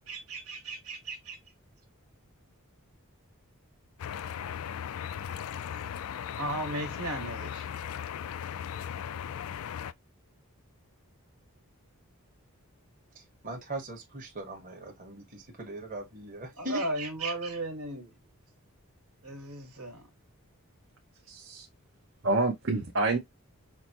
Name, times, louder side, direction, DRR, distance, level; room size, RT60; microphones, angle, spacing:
voice 1, 0.1-1.4 6.4-7.7 16.6-18.1 19.2-20.1, right 2 dB, 80° right, 1.7 m, -35 dB
sound 1, 4.0-9.9, left 8 dB, 75° left, 0.3 m, -37 dB
voice 2, 13.1-16.8, right 1 dB, 40° right, 1.4 m, -40 dB
voice 3, 21.3-21.6 22.2-23.2, right 2 dB, 55° right, 0.9 m, -27 dB
5.8 x 2.2 x 2.8 m
head